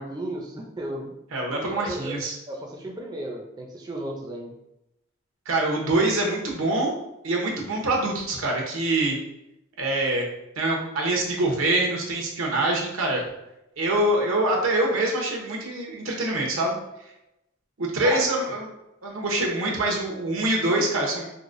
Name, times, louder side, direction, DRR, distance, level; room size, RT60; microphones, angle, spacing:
voice 1, 0.0-1.2 1.5-2.2 2.5-4.5 18.0-18.3, right 1 dB, 20° right, -1 dB, 0.4 m, -34 dB
voice 2, 1.3-2.4 5.5-7.0 7.2-9.2 9.8-10.3 10.6-13.2 13.8-16.7 17.8-18.6 19.0-21.3, right 2 dB, 85° right, -1 dB, 0.9 m, -24 dB
4.7 x 2.1 x 2.5 m, 0.88 s
head